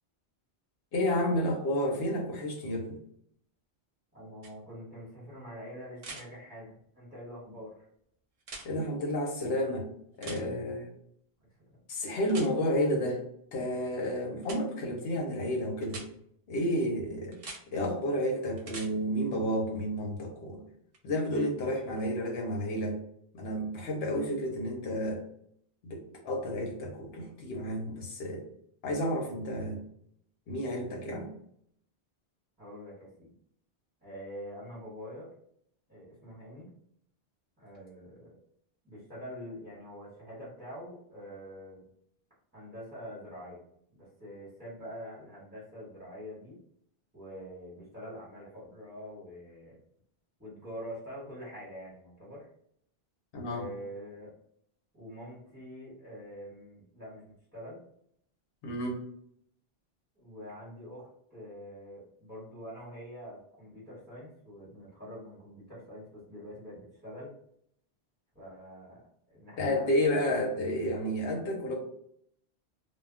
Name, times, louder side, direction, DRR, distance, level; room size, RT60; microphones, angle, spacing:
voice 1, 0.9-2.9 8.6-9.9 10.2-10.9 11.9-13.2 13.5-16.0 16.5-17.4 17.7-20.6 21.0-23.0 23.3-25.2 25.8-28.4 28.8-29.8 30.5-31.3 53.3-53.6 58.6-59.0 69.6-71.8, equal, 75° left, 1 dB, 0.9 m, -31 dB
voice 2, 4.1-7.9 11.6-11.8 32.6-33.3 34.0-35.3 35.9-36.7 37.6-38.4 38.8-41.8 42.5-43.6 43.9-46.6 47.1-49.8 50.4-52.5 53.5-54.3 54.9-57.8 60.2-67.3 68.3-70.5, equal, 10° right, -9 dB, 1.0 m, -45 dB
sound 1, 4.4-4.5 6.0-6.2 8.4-8.7 10.2-10.4 12.3-12.5 14.4-14.6 15.8-16.1 17.3-17.6 18.6-18.9 20.9-21.0, right 3 dB, 55° right, 0.4 m, -43 dB
2.2 x 2.1 x 3.5 m, 0.70 s
omnidirectional pair, 1.1 m